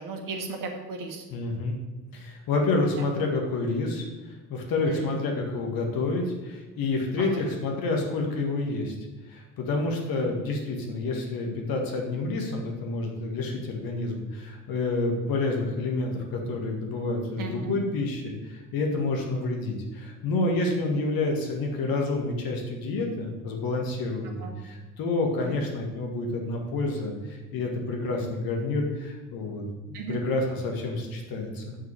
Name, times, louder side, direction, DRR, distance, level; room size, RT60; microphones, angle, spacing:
voice 1, 0.0-1.2 4.9-5.1 7.2-7.4 10.1-10.2 17.4-17.8 24.4-24.5 25.4-25.6 29.9-30.2, right 4 dB, 45° right, 3 dB, 1.7 m, -36 dB
voice 2, 1.3-1.8 2.1-4.0 4.5-8.9 9.3-31.8, left 2 dB, 50° left, 2 dB, 2.0 m, -29 dB
6.9 x 6.3 x 7.0 m, 1.2 s
figure-of-eight pair, 55°, 45 cm